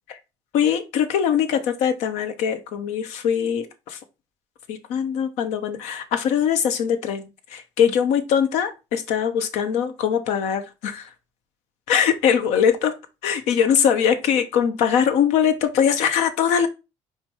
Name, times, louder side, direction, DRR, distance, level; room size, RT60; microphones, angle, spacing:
voice 1, 0.5-4.0 4.7-11.1 11.9-12.9 13.2-16.7, left 8 dB, 85° left, 1.0 m, -22 dB
5.2 x 4.6 x 4.5 m
cardioid pair, 115°, 11 cm